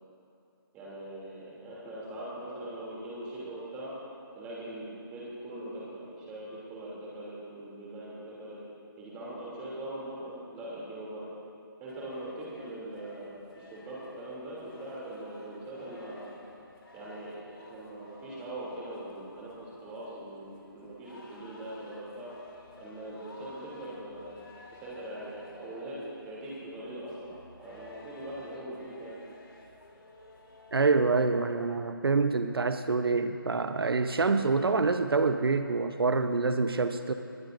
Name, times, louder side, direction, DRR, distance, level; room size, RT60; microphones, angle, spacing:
voice 1, 0.7-3.9 4.4-8.6 9.0-11.2 11.8-16.3 16.9-22.3 22.8-24.4 24.8-26.0 26.2-27.3 27.6-29.2, right 1 dB, 10° right, -7 dB, 2.8 m, -41 dB
sound 1, 11.9-30.9, left 2 dB, 75° left, 3.0 m, -54 dB
voice 2, 30.7-37.1, right 4 dB, 85° right, 9 dB, 0.8 m, -26 dB
20.5 x 19.0 x 2.6 m, 2.6 s
hypercardioid pair, 170°, 12 cm